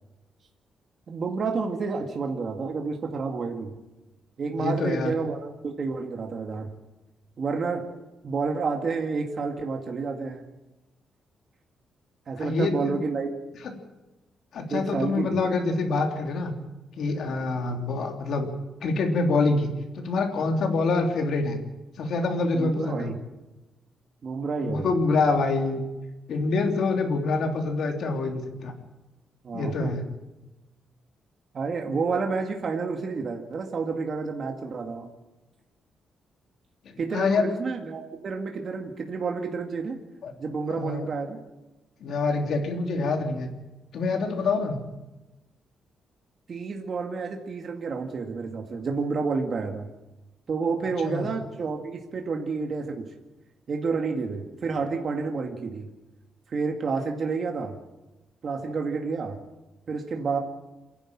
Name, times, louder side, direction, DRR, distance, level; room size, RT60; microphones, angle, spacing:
voice 1, 1.1-3.7 4.4-6.7 7.4-7.9 8.2-10.4 12.3-13.3 14.7-15.4 22.5-23.1 24.2-24.9 29.4-29.9 31.5-35.1 37.0-40.0 40.4-41.4 46.5-49.9 50.5-53.1 53.7-55.9 56.5-57.8 58.4-59.4 59.9-60.4, right 4 dB, 45° right, 2 dB, 2.1 m, -29 dB
voice 2, 4.5-5.1 12.4-13.0 13.6-13.7 14.5-16.5 17.0-18.5 18.8-21.6 22.0-23.1 24.6-25.8 26.3-28.7 29.5-30.0 36.8-37.4 40.2-40.3 40.7-41.1 42.0-43.5 43.9-44.8 51.0-51.3, left 3 dB, 65° left, 3 dB, 3.2 m, -26 dB
27.5 x 11.0 x 8.8 m, 1.1 s
cardioid pair, 140°, 0 cm